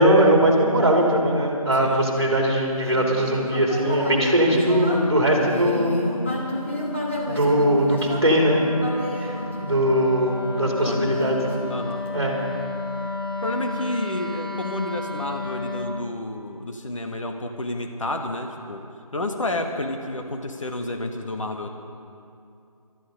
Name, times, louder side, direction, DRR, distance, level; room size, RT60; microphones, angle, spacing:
voice 1, 0.0-5.9 7.3-8.7 9.2-11.6 12.1-12.3, right 1 dB, 45° right, 0 dB, 2.8 m, -20 dB
voice 2, 1.8-2.4 10.6-11.2 11.7-12.0 13.4-18.8 19.1-21.7, left 1 dB, 55° left, 4 dB, 1.3 m, -30 dB
Human voice, 2.9-10.2 10.8-12.3, left 1 dB, 20° left, 1.2 m, -31 dB
Wind instrument woodwind instrument, 3.1-16.1, left 3 dB, 40° left, 1.0 m, -34 dB
17.0 x 12.5 x 5.2 m, 2.6 s
figure-of-eight pair, 175°, 19 cm